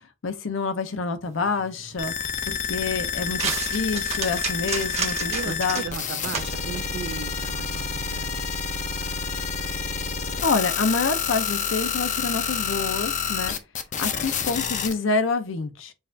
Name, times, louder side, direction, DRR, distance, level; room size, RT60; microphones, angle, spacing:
voice 1, 0.2-5.8 10.4-13.5 14.0-15.9, left 4 dB, 75° left, 0.7 m, -27 dB
sound 1, 1.2-8.1, right 5 dB, 35° right, 0.9 m, -34 dB
sound 2, 2.0-14.9, left 6 dB, 40° left, 0.5 m, -29 dB
voice 2, 5.3-8.4, right 6 dB, 55° right, 0.3 m, -36 dB
6.3 x 2.5 x 2.6 m
head